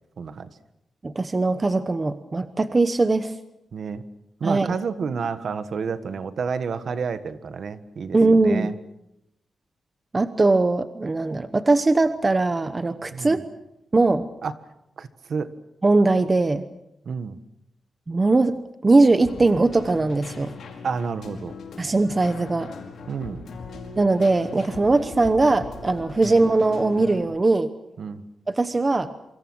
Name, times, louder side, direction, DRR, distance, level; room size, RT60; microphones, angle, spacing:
voice 1, 0.2-0.5 3.7-4.0 4.4-8.7 13.1-13.4 14.4-14.5 15.0-15.5 17.0-17.4 20.8-21.5 23.1-23.4 26.2-26.4 28.0-28.2, right 5 dB, 55° right, 11 dB, 1.5 m, -30 dB
voice 2, 1.0-3.3 4.4-4.7 8.1-8.7 10.1-13.4 13.9-14.3 15.8-16.7 18.1-18.6 18.8-20.5 21.8-22.7 24.0-27.7 28.5-29.1, right 3 dB, 20° right, 10 dB, 0.9 m, -20 dB
Keyboard (musical), 19.2-27.2, left 4 dB, 75° left, 5.2 m, -39 dB
27.5 x 25.0 x 6.3 m, 0.84 s
wide cardioid pair, 180°, 0 cm